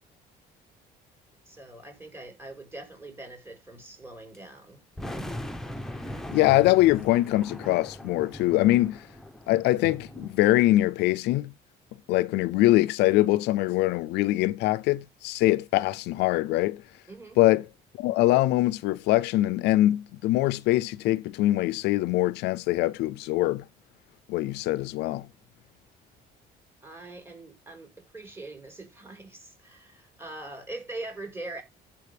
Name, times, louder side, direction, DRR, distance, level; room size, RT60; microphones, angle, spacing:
voice 1, 1.4-4.8 17.1-17.4 26.8-31.6, right 2 dB, 15° right, 4.3 m, -42 dB
sound 1, 4.3-4.4 5.0-10.4, left 1 dB, ahead, 0.9 m, -39 dB
voice 2, 6.3-9.1 9.5-11.5 12.1-16.8 17.4-17.7 18.0-23.7 24.3-25.3, left 16 dB, 85° left, 0.4 m, -23 dB
15.0 x 5.6 x 3.3 m
cardioid pair, 110°, 17 cm